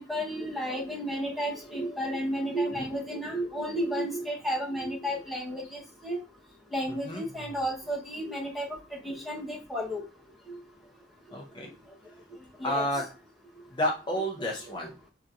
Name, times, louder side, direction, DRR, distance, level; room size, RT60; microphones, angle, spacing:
voice 1, 0.0-6.2 6.7-8.7 9.0-10.0 12.6-12.9, equal, ahead, -1 dB, 1.1 m, -32 dB
voice 2, 6.9-7.2 11.3-11.7 12.6-13.0 13.7-14.9, equal, 30° left, 0 dB, 0.6 m, -30 dB
6.8 x 2.9 x 2.5 m, 0.33 s
head